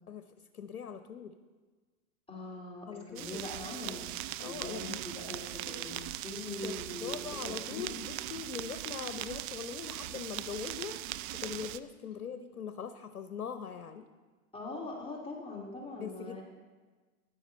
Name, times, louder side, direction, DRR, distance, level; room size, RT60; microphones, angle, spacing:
voice 1, 0.5-1.4 2.9-3.4 4.4-5.0 6.6-11.0 11.3-14.1 16.0-16.4, left 7 dB, 90° left, 9 dB, 0.9 m, -41 dB
voice 2, 2.3-4.1 4.5-7.9 14.5-16.4, left 2 dB, 10° left, -2 dB, 2.2 m, -42 dB
sound 1, 3.2-11.8, right 14 dB, 35° right, 0.5 m, -40 dB
13.5 x 10.5 x 5.4 m, 1.4 s
hypercardioid pair, 105°, 44 cm